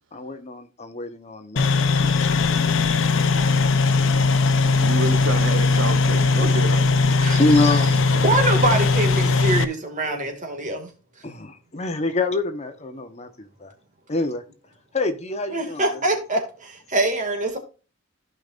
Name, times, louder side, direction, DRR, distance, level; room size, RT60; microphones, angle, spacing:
voice 1, 0.1-2.7 7.3-7.9 11.2-13.7 14.1-14.4 14.9-16.0, left 2 dB, 35° left, 1.1 m, -26 dB
sound 1, 1.6-9.6, left 3 dB, 70° left, 0.8 m, -19 dB
voice 2, 3.3-3.6 3.8-4.8 7.2-7.4 8.2-10.9 15.5-17.6, right 2 dB, 40° right, 2.2 m, -25 dB
voice 3, 4.8-6.9 7.4-7.6, right 3 dB, 70° right, 0.9 m, -29 dB
15.0 x 5.3 x 2.5 m
head